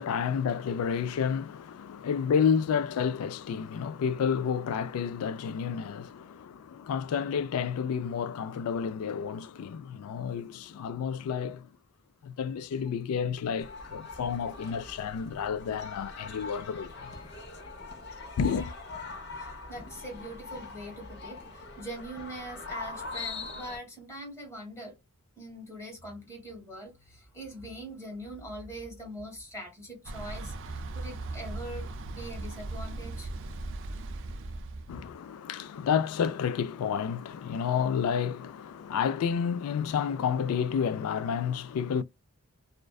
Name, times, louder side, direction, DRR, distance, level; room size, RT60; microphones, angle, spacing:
voice 1, 0.0-11.7 12.2-17.1 18.4-18.7 34.9-42.0, left 7 dB, 80° left, 0.3 m, -30 dB
sound 1, 13.6-23.8, left 3 dB, 50° left, 0.8 m, -42 dB
voice 2, 19.4-24.9 25.4-33.3, right 1 dB, 15° left, 1.2 m, -42 dB
Thunder / Bicycle, 30.0-35.1, right 2 dB, 60° right, 0.5 m, -38 dB
2.5 x 2.2 x 2.3 m
head